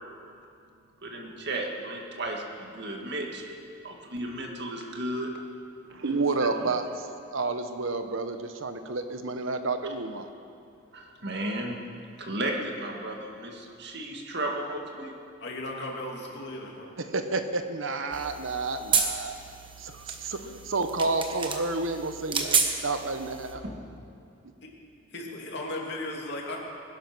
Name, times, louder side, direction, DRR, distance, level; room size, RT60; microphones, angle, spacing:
voice 1, 1.0-3.5 3.8-5.3 6.0-6.5 10.9-11.8 12.2-15.2 23.6-23.8, right 1 dB, 55° right, 1 dB, 2.0 m, -34 dB
voice 2, 5.9-10.3 17.1-19.3 19.8-23.6, right 3 dB, 75° right, 8 dB, 1.0 m, -30 dB
voice 3, 15.4-16.9 24.6-24.7 25.1-26.6, left 1 dB, 55° left, -1 dB, 2.7 m, -36 dB
sound 1, 18.1-23.5, right 5 dB, 25° right, 1.2 m, -31 dB
21.0 x 11.0 x 6.1 m, 2.5 s
head